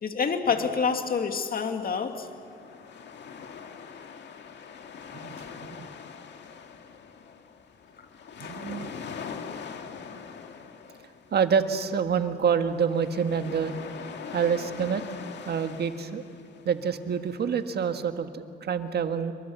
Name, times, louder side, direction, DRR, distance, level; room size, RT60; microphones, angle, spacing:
voice 1, 0.0-2.3 8.4-8.5, left 5 dB, 45° left, 6 dB, 2.2 m, -27 dB
sound 1, 0.8-18.1, left 6 dB, 65° left, 2.0 m, -43 dB
voice 2, 5.1-5.9 8.4-8.9 11.3-13.7 14.3-15.0 15.4-16.2 16.6-19.3, right 7 dB, 55° right, 8 dB, 1.7 m, -27 dB
27.0 x 23.5 x 7.2 m, 2.7 s
cardioid pair, 90°, 20 cm